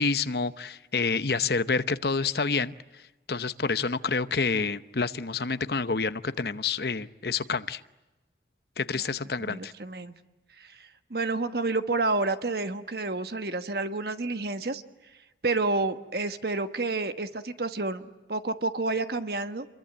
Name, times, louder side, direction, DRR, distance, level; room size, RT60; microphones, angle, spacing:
voice 1, 0.0-2.7 3.3-7.8 8.8-9.7, left 4 dB, 60° left, 13 dB, 0.9 m, -28 dB
voice 2, 9.4-10.2 10.6-14.8 15.4-19.7, right 3 dB, 60° right, 9 dB, 1.3 m, -30 dB
28.0 x 23.0 x 8.9 m, 1.1 s
head